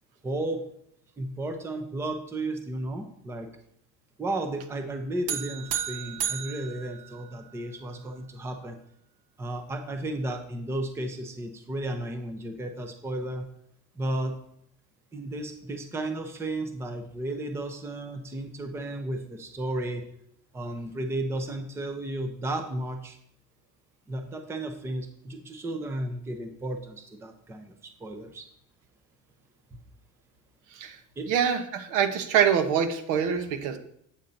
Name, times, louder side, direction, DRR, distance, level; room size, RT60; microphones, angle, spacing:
voice 1, 0.2-0.6 1.2-3.5 4.2-8.8 9.4-13.5 14.0-14.3 15.1-20.0 20.5-23.2 24.1-28.5 29.7-29.8 31.2-31.3, right 1 dB, 10° right, 5 dB, 0.6 m, -33 dB
sound 1, 5.3-7.7, right 9 dB, 50° right, 1.0 m, -34 dB
voice 2, 31.3-33.8, right 8 dB, 70° right, 8 dB, 1.2 m, -25 dB
8.6 x 7.1 x 4.0 m, 0.70 s
cardioid pair, 175°, 31 cm